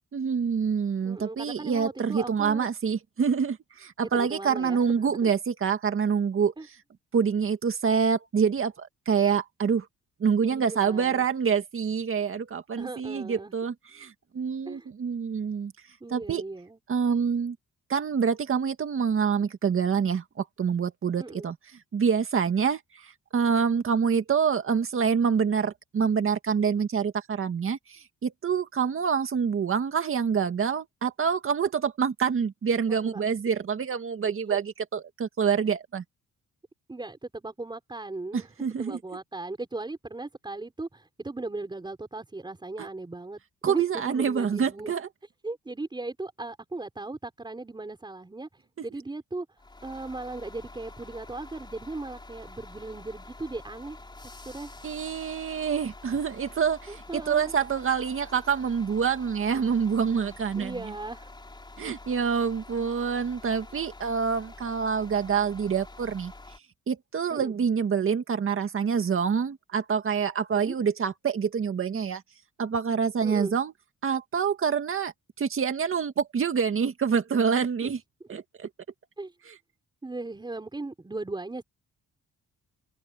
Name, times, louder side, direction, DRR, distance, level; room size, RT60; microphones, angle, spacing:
voice 1, 0.1-6.5 7.1-9.9 10.2-15.7 16.1-16.4 16.9-17.6 17.9-21.6 21.9-36.0 38.6-39.0 42.8-42.9 43.6-45.1 54.8-60.8 61.8-66.3 66.9-72.2 72.6-73.7 74.0-75.1 75.4-78.0 78.3-78.7, right 6 dB, 40° right, 2.1 m, -26 dB
voice 2, 1.0-2.7 4.1-5.3 6.6-6.7 10.4-11.3 12.8-13.5 14.7-14.9 16.0-16.8 21.2-21.5 32.9-33.2 34.2-34.6 36.9-38.5 38.8-43.4 43.6-45.0 45.4-54.0 54.5-54.8 56.9-57.5 60.6-61.3 67.3-67.5 70.5-70.7 73.2-73.6 77.8-77.9 79.2-79.4 80.0-81.6, right 2 dB, 15° right, 5.4 m, -37 dB
sound 1, 49.6-66.6, left 2 dB, 15° left, 4.5 m, -47 dB
wide cardioid pair, 170°, 33 cm